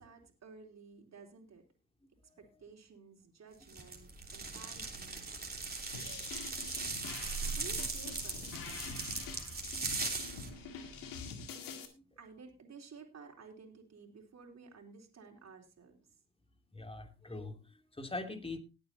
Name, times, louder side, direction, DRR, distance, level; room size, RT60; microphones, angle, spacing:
voice 1, 0.0-1.6 2.4-5.3 5.9-6.3 7.5-8.6 12.2-16.0, right 5 dB, 50° right, 1 dB, 4.0 m, -54 dB
sound 1, 3.7-10.5, right 4 dB, 25° right, 3.3 m, -39 dB
sound 2, 5.9-11.9, left 5 dB, 75° left, 2.1 m, -46 dB
sound 3, 7.0-11.4, right 3 dB, 65° right, 2.5 m, -56 dB
voice 2, 16.7-18.6, left 2 dB, 15° left, 5 dB, 2.7 m, -42 dB
19.5 x 8.6 x 2.8 m, 0.29 s
supercardioid pair, 60°, 34 cm